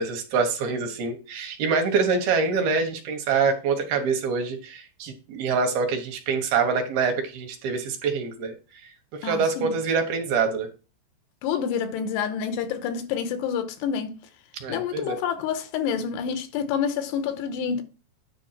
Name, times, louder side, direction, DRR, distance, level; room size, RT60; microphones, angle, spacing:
voice 1, 0.0-8.6 9.1-10.7 14.6-15.2, right 5 dB, 70° right, 2.8 m, -25 dB
voice 2, 9.2-9.7 11.4-14.2 14.7-17.8, left 7 dB, 90° left, 3.0 m, -28 dB
9.6 x 4.1 x 5.8 m
omnidirectional pair, 4.8 m